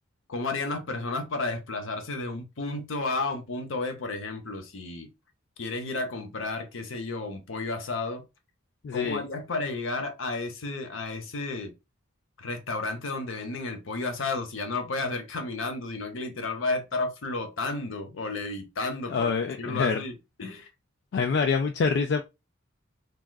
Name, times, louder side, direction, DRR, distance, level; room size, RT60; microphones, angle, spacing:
voice 1, 0.3-5.1 5.6-8.3 8.9-11.7 12.4-20.1 20.4-20.7, left 3 dB, 80° left, 0.8 m, -32 dB
voice 2, 8.8-9.2 19.1-20.0 21.1-22.2, left 5 dB, 60° left, 0.3 m, -26 dB
3.6 x 2.4 x 2.2 m
head